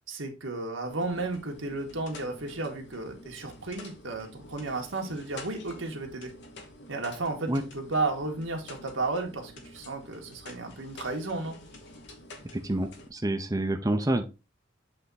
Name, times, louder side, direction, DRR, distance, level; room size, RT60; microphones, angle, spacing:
voice 1, 0.1-6.3 6.9-11.6, right 3 dB, 85° right, 2 dB, 1.7 m, -33 dB
sound 1, 0.9-13.1, left 1 dB, 60° left, 1.3 m, -48 dB
voice 2, 12.5-14.2, right 1 dB, 20° right, 5 dB, 0.6 m, -28 dB
7.7 x 3.6 x 4.1 m, 0.30 s
head